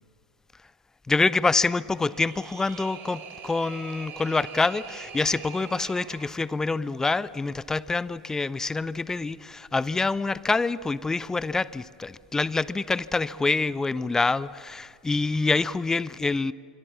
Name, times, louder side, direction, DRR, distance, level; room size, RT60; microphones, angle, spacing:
voice 1, 1.1-16.5, left 3 dB, 10° left, 20 dB, 0.6 m, -26 dB
sound 1, 1.9-6.4, right 7 dB, 40° right, 4.0 m, -43 dB
25.0 x 25.0 x 7.3 m, 2.2 s
figure-of-eight pair, 80°, 5 cm